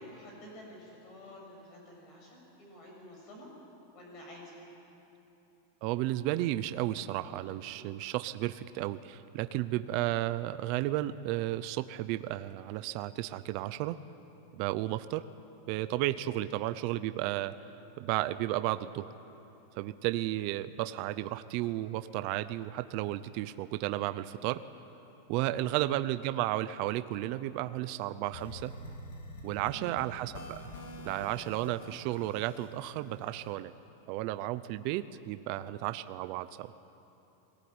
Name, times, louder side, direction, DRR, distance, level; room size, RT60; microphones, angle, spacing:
voice 1, 0.0-3.5 3.9-4.6 7.7-7.9 15.7-15.9 25.4-25.7 29.5-29.9 31.0-31.3 35.5-35.6, left 1 dB, 30° left, 0 dB, 6.7 m, -50 dB
voice 2, 5.8-14.0 14.6-15.2 15.7-17.5 18.0-19.1 19.7-24.6 25.3-28.7 29.4-30.7 31.0-33.7 34.1-36.7, right 15 dB, 40° right, 12 dB, 0.6 m, -33 dB
sound 1, 28.3-33.6, left 1 dB, 80° left, 3.1 m, -47 dB
22.0 x 19.0 x 9.5 m, 3.0 s
supercardioid pair, 175°, 0 cm